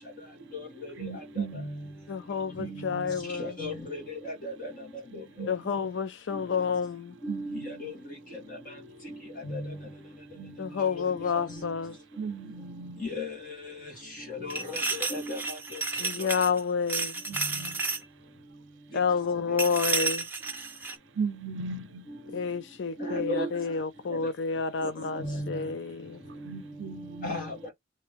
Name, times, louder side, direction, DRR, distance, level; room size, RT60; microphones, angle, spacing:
voice 1, 1.0-1.7 2.6-3.1 5.1-5.8 7.3-7.7 10.4-10.7 12.2-13.0 17.3-17.8 21.2-22.1 26.4-27.3, right 5 dB, 90° right, 0.6 m, -37 dB
voice 2, 1.5-1.9 2.8-3.1 3.4-4.7 7.2-7.9 9.4-9.8 11.5-11.7 13.1-13.3 14.5-14.8 15.1-15.4 17.3-17.5 19.4-19.5 23.0-23.5 24.8-24.9 25.2-25.6 27.2-27.6, left 1 dB, 50° left, 2.1 m, -34 dB
voice 3, 2.1-3.6 5.5-7.2 10.6-12.0 16.0-17.2 18.9-20.3 22.3-26.2, left 5 dB, 70° left, 0.4 m, -29 dB
sound 1, 14.5-16.6 16.9-18.0 19.6-21.0, right 4 dB, 10° right, 0.7 m, -31 dB
3.4 x 2.7 x 3.4 m
head